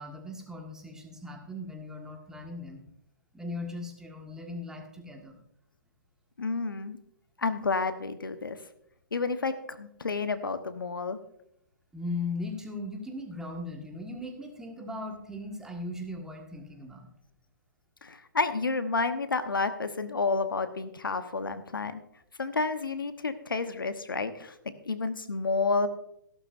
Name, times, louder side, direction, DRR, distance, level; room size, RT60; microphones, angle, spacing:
voice 1, 0.0-2.8 3.3-5.4 11.9-17.1, left 2 dB, 5° right, 1 dB, 1.6 m, -38 dB
voice 2, 6.4-7.0 7.4-8.6 9.1-11.2 18.0-22.0 22.4-25.9, left 4 dB, 85° left, 10 dB, 1.1 m, -30 dB
15.0 x 12.0 x 2.6 m, 0.74 s
hypercardioid pair, 135°, 11 cm